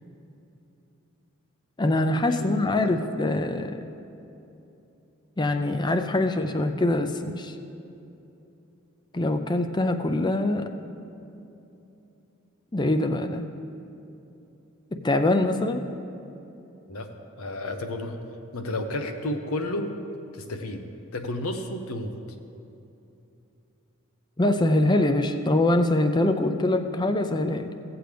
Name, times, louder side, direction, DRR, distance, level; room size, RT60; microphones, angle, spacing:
voice 1, 1.8-3.8 5.4-7.5 9.1-10.7 12.7-13.5 14.9-15.9 24.4-27.8, left 2 dB, 20° left, 8 dB, 0.4 m, -24 dB
voice 2, 2.3-3.1 16.9-17.1 17.4-18.2 18.5-19.9 20.3-22.1, left 1 dB, 80° left, 6 dB, 0.8 m, -32 dB
16.5 x 7.7 x 3.4 m, 2.8 s
head